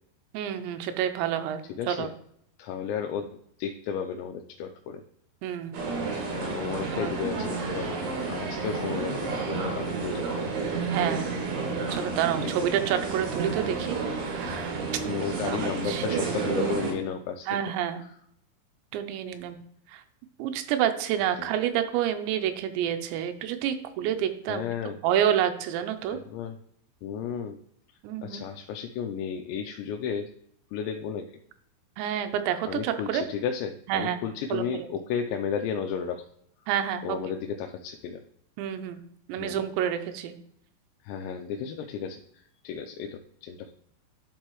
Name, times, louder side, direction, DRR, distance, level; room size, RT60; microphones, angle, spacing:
voice 1, 0.3-1.6 1.9-2.1 5.4-5.8 7.0-7.1 10.9-11.3 11.9-14.0 14.2-14.8 15.4-16.4 17.5-18.0 18.9-19.6 19.9-20.0 20.4-26.2 28.0-28.4 32.0-33.2 33.9-34.2 34.5-34.9 36.7-37.2 38.6-39.0 39.3-40.3, right 10 dB, 80° right, 8 dB, 2.9 m, -28 dB
voice 2, 1.7-2.1 2.6-3.3 3.6-5.0 6.3-10.6 12.4-12.7 15.1-17.6 18.0-18.2 21.4-21.5 24.5-25.0 26.1-26.6 27.0-27.6 28.2-30.3 30.7-31.3 32.7-36.3 37.0-38.2 39.4-39.6 41.0-43.7, left 7 dB, 85° left, 4 dB, 2.8 m, -33 dB
sound 1, 5.7-16.9, right 4 dB, 65° right, 3.6 m, -31 dB
11.5 x 4.7 x 3.0 m, 0.69 s
omnidirectional pair, 5.2 m